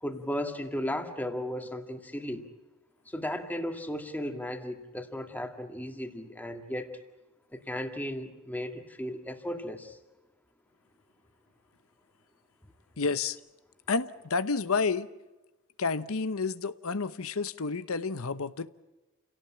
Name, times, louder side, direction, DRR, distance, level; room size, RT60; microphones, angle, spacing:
voice 1, 0.0-2.4 3.1-6.9 7.5-10.0, left 1 dB, 10° left, 2.0 m, -35 dB
voice 2, 13.0-13.4 13.9-15.1 15.8-18.7, left 4 dB, 75° left, 0.9 m, -30 dB
29.5 x 17.5 x 8.6 m
head